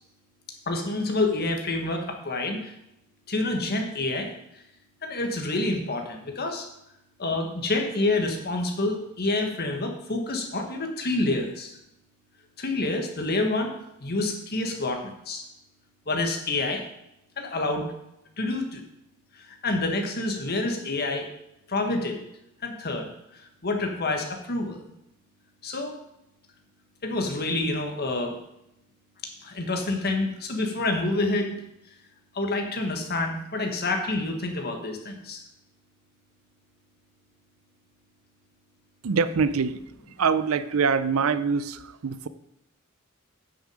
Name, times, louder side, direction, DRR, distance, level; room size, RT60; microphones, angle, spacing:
voice 1, 0.7-2.7 3.3-4.3 5.0-6.7 7.2-11.8 12.6-13.7 14.0-15.4 16.1-16.8 17.4-17.9 18.4-18.8 19.3-21.3 21.7-22.2 22.6-23.1 23.6-24.8 25.6-25.9 27.0-28.4 29.4-31.6 32.3-35.4, left 2 dB, 50° left, 3 dB, 1.6 m, -28 dB
voice 2, 39.0-39.8 40.2-42.3, right 5 dB, 80° right, 14 dB, 0.5 m, -24 dB
8.9 x 6.3 x 5.0 m, 0.83 s
head